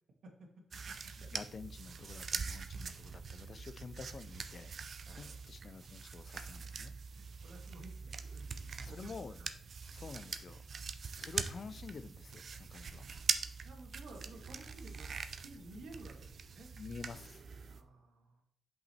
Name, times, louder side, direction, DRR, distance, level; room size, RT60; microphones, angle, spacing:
voice 1, 0.2-1.1 3.3-3.5 5.1-5.4 7.1-9.1 9.4-9.5 13.6-16.7 17.7-18.4, right 2 dB, 75° right, 3 dB, 1.6 m, -54 dB
sound 1, 0.7-17.8, right 5 dB, 50° right, 0.5 m, -43 dB
voice 2, 1.2-4.7 5.2-6.9 8.8-9.5 9.9-10.6 11.2-13.1 16.7-17.4, left 5 dB, 45° left, 14 dB, 0.4 m, -49 dB
5.9 x 5.5 x 4.3 m, 0.72 s
wide cardioid pair, 140°, 0 cm